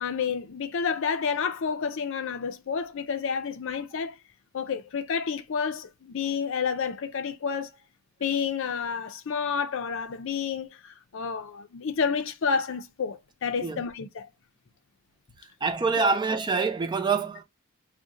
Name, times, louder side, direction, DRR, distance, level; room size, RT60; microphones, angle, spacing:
voice 1, 0.0-4.1 4.5-7.7 8.2-14.3 16.0-16.1, left 6 dB, 65° left, 0.5 m, -30 dB
voice 2, 15.6-17.4, right 4 dB, 20° right, 0.4 m, -25 dB
2.7 x 2.1 x 3.7 m
head